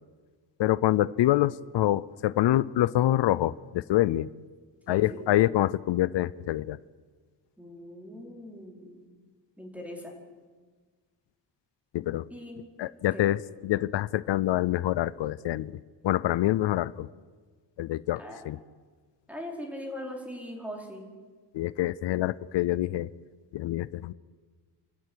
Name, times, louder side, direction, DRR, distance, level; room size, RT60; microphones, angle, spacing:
voice 1, 0.6-4.3 4.9-6.8 11.9-12.3 12.8-15.7 16.0-17.1 17.8-18.6 21.5-23.1 23.5-24.1, left 14 dB, 85° left, 18 dB, 0.6 m, -26 dB
voice 2, 4.9-5.2 7.6-9.1 9.6-10.1 12.3-12.7 13.1-13.2 18.2-18.4 19.3-21.0, left 1 dB, 5° right, 0 dB, 4.8 m, -40 dB
29.0 x 13.0 x 9.6 m, 1.5 s
wide cardioid pair, 140°, 42 cm